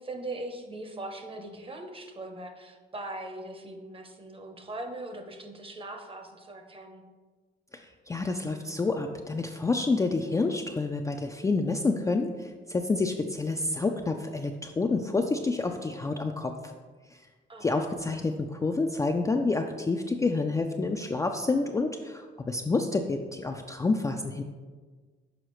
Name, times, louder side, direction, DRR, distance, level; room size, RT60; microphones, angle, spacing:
voice 1, 0.0-7.0 17.5-17.8, right 2 dB, 25° right, 5 dB, 0.8 m, -40 dB
voice 2, 7.7-16.7 17.6-24.4, left 3 dB, 15° left, 3 dB, 0.3 m, -28 dB
6.4 x 4.9 x 3.1 m, 1.4 s
cardioid pair, 90°, 20 cm